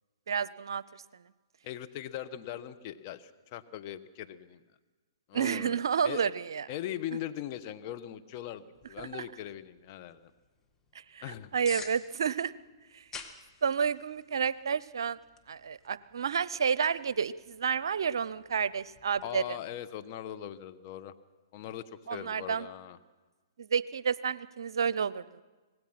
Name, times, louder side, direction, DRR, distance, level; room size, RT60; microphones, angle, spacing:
voice 1, 0.3-1.0 5.3-6.6 9.0-9.2 11.1-11.2 11.5-12.5 12.9-13.0 13.6-15.2 15.5-19.4 22.1-22.7 23.6-25.4, right 7 dB, 70° right, 19 dB, 0.7 m, -30 dB
voice 2, 1.6-4.6 5.3-6.3 6.7-10.3 11.2-11.5 19.2-21.1 21.5-23.0, left 11 dB, 40° left, 9 dB, 1.3 m, -40 dB
sound 1, 8.7-19.3, left 5 dB, 15° left, 2.1 m, -52 dB
25.5 x 19.0 x 5.9 m, 1.3 s
hypercardioid pair, 125°, 2 cm